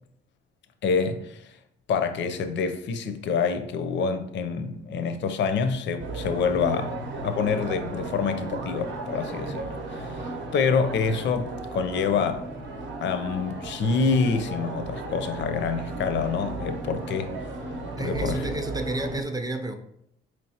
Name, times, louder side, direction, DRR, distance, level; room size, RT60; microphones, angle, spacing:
voice 1, 0.8-1.5 1.9-12.5 13.0-17.3 18.0-18.4, left 5 dB, 65° left, 0.5 m, -27 dB
sound 1, 6.0-19.2, right 2 dB, 70° right, 0.7 m, -35 dB
voice 2, 18.0-19.8, right 2 dB, 20° right, 0.4 m, -31 dB
4.2 x 3.2 x 2.8 m
cardioid pair, 90°, 20 cm